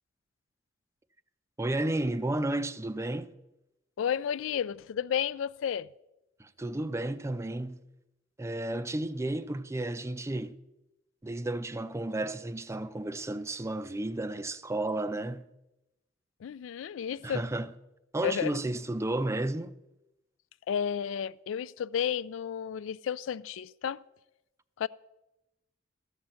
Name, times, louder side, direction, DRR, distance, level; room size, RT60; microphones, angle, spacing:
voice 1, 1.6-3.3 6.4-7.8 8.4-10.6 11.2-15.5 17.2-17.7 18.1-19.7, right 2 dB, 15° right, 0.4 m, -32 dB
voice 2, 4.0-5.9 16.4-17.5 18.2-18.5 20.7-24.0 24.8-24.9, left 8 dB, 90° left, 0.3 m, -32 dB
13.5 x 5.7 x 7.6 m
head